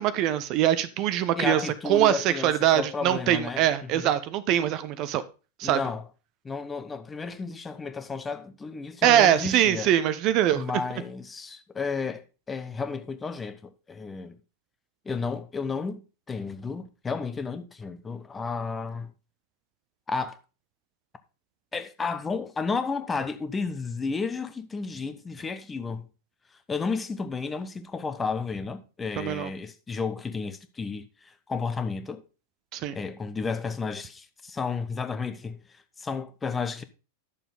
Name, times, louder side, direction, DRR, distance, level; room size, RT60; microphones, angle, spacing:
voice 1, 0.0-5.2 5.6-5.8 9.0-10.6 29.2-29.5 32.7-33.0, right 11 dB, 40° right, 0.7 m, -23 dB
voice 2, 1.4-4.1 5.6-6.0 6.4-9.9 10.5-14.4 15.0-19.1 20.1-20.4 21.7-26.1 26.7-32.2 32.9-35.6 36.0-36.8, left 4 dB, 15° left, 0.9 m, -32 dB
11.0 x 6.9 x 3.9 m
figure-of-eight pair, 90°, 0 cm